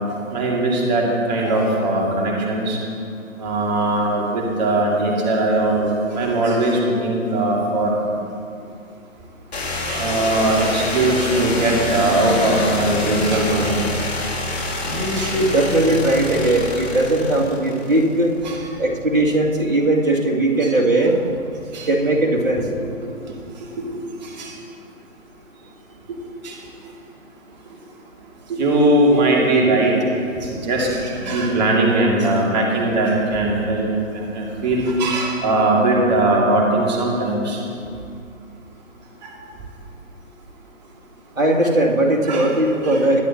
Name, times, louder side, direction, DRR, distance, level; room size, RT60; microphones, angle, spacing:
voice 1, 0.1-2.8 3.4-8.0 9.9-13.8 15.1-15.3 18.4-18.6 21.7-21.9 22.6-22.7 23.0-23.9 24.4-24.5 26.4-26.5 28.5-29.9 30.3-37.6 39.2-39.3 42.3-42.5 42.9-43.0, right 2 dB, 35° right, -2 dB, 2.4 m, -20 dB
sound 1, 9.5-18.3, left 2 dB, 50° left, 2.2 m, -26 dB
voice 2, 14.8-18.3 18.8-21.2 21.8-22.7 41.4-43.2, right 1 dB, 80° right, -2 dB, 2.6 m, -19 dB
21.5 x 10.0 x 2.9 m, 2.4 s
figure-of-eight pair, 140°, 40 cm